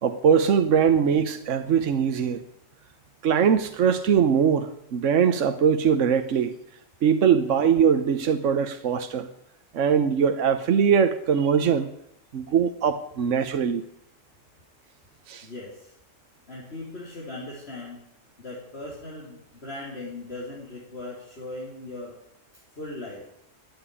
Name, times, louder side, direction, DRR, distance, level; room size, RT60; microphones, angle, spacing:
voice 1, 0.0-2.4 3.2-6.5 7.0-9.3 9.7-11.9 12.3-13.8 15.3-15.5, right 7 dB, 70° right, 8 dB, 1.2 m, -21 dB
voice 2, 15.4-16.0 16.5-18.0 18.4-22.2 22.8-23.3, left 2 dB, 50° left, -4 dB, 3.8 m, -38 dB
13.5 x 9.7 x 9.9 m, 0.80 s
omnidirectional pair, 1.3 m